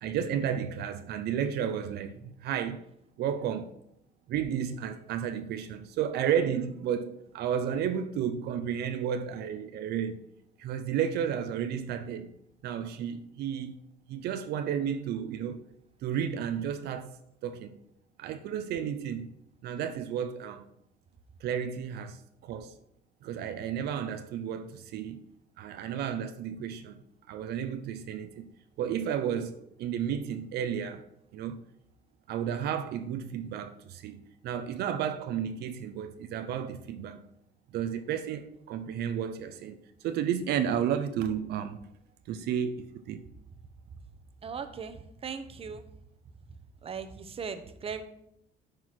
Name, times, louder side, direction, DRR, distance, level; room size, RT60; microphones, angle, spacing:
voice 1, 0.0-2.8 3.2-3.7 4.3-10.2 10.6-12.3 12.6-13.8 14.1-15.6 16.0-17.2 17.4-17.8 18.2-19.3 19.6-20.6 21.4-22.7 23.2-25.2 25.6-27.0 27.3-28.5 28.8-31.0 31.3-31.6 32.3-37.3 37.7-39.8 40.0-41.8 42.3-43.3, right 8 dB, 70° right, 0.7 m, -32 dB
voice 2, 44.4-45.9 46.5-46.6 46.8-48.0, right 6 dB, 35° right, 0.9 m, -39 dB
9.7 x 4.6 x 5.9 m
cardioid pair, 110°, 17 cm